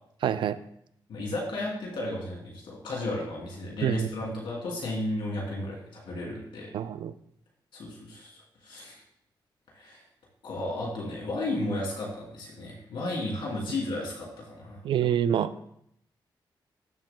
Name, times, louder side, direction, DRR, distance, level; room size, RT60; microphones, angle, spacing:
voice 1, 0.2-0.6 3.8-4.1 6.7-7.1 14.8-15.5, right 10 dB, 90° right, 13 dB, 0.4 m, -26 dB
voice 2, 1.1-6.7 7.7-8.3 8.6-9.0 9.7-10.0 10.4-14.8, left 1 dB, 85° left, -2 dB, 3.0 m, -33 dB
13.0 x 7.4 x 2.3 m, 0.73 s
wide cardioid pair, 135°, 8 cm